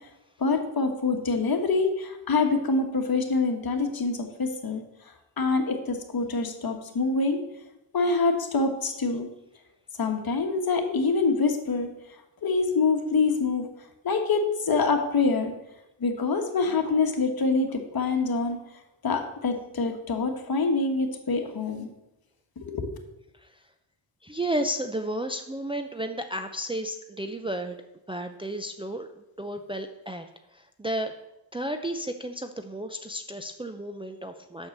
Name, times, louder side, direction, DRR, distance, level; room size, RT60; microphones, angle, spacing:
voice 1, 0.4-4.8 5.4-7.4 7.9-9.3 10.0-11.9 12.4-13.7 14.0-15.5 16.0-18.6 19.0-21.9 22.6-22.9, left 4 dB, 50° left, 4 dB, 1.5 m, -25 dB
voice 2, 24.2-27.8 28.1-29.1 29.4-30.3 30.5-31.1 31.5-34.7, right 1 dB, 10° right, 5 dB, 0.5 m, -32 dB
7.0 x 6.4 x 6.6 m, 0.91 s
cardioid pair, 80°, 46 cm